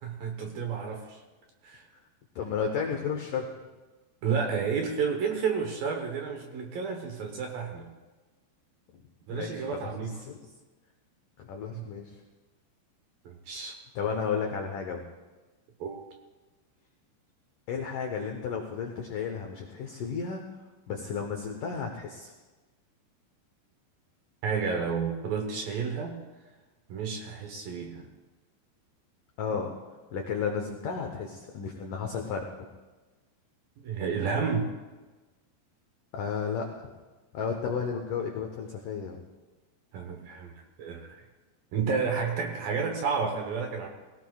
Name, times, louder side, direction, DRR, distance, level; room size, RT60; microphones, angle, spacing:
voice 1, 0.0-1.2 1.6-1.8 4.2-7.9 9.3-10.2 11.7-11.9 13.3-13.8 15.8-16.0 24.4-26.2 26.9-28.1 33.8-34.7 39.9-41.1 41.7-43.9, right 5 dB, 70° right, 3 dB, 2.4 m, -31 dB
voice 2, 2.4-3.5 8.9-9.0 9.3-9.9 10.2-10.4 11.4-12.1 13.6-15.0 17.7-20.4 20.9-22.3 29.4-29.7 30.1-32.7 36.1-36.9 37.3-39.2, left 6 dB, 80° left, 3 dB, 1.8 m, -33 dB
21.5 x 17.0 x 2.4 m, 1.2 s
omnidirectional pair, 5.2 m